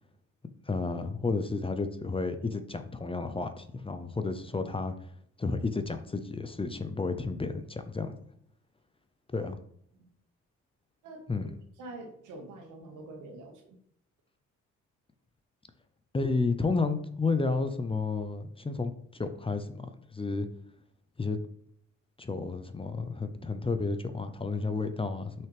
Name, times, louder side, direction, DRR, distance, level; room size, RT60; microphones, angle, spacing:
voice 1, 0.7-4.9 5.4-8.1 9.3-9.6 11.3-11.5 16.1-20.5 21.2-21.4 22.2-25.5, left 3 dB, 20° left, 9 dB, 0.6 m, -31 dB
voice 2, 11.8-13.8, right 2 dB, 85° right, 3 dB, 1.7 m, -45 dB
6.1 x 5.9 x 3.5 m, 0.65 s
cardioid pair, 90°, 30 cm